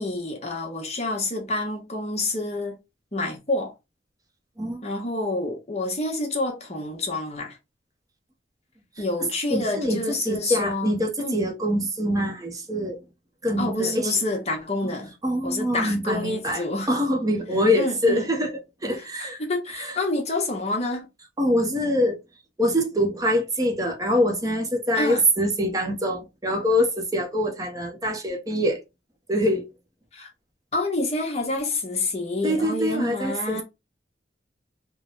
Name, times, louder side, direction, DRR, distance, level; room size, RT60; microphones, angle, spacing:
voice 1, 0.0-2.8 3.1-3.7 4.8-7.6 9.0-11.4 13.6-15.1 15.4-16.9 17.8-18.3 19.0-21.1 24.9-25.2 30.1-30.3 30.7-33.6, left 2 dB, 35° left, 1.1 m, -28 dB
voice 2, 9.2-13.0 13.4-14.1 14.8-14.9 15.2-19.4 19.7-20.0 21.4-22.2 22.6-28.8 29.3-29.7 32.4-33.6, equal, 20° right, 0.8 m, -24 dB
3.4 x 2.2 x 3.8 m
head